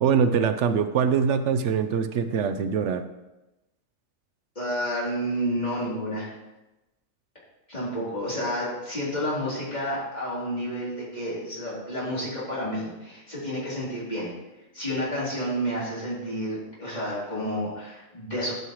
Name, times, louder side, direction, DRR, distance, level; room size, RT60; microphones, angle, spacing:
voice 1, 0.0-3.0, right 6 dB, 70° right, 9 dB, 0.9 m, -23 dB
voice 2, 4.5-6.3 7.7-14.3 14.7-18.5, equal, 30° left, -8 dB, 3.3 m, -30 dB
12.0 x 6.3 x 3.1 m, 1.0 s
omnidirectional pair, 1.4 m